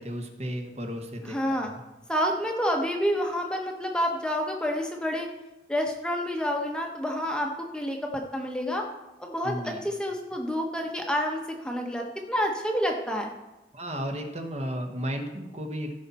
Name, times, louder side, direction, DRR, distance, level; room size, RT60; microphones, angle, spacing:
voice 1, 0.0-1.8 9.4-9.8 13.7-15.9, equal, 35° right, 4 dB, 1.1 m, -34 dB
voice 2, 1.2-1.7 2.1-5.3 5.7-8.8 9.2-13.3, equal, 5° left, 1 dB, 0.9 m, -29 dB
15.5 x 5.7 x 4.2 m, 1.0 s
head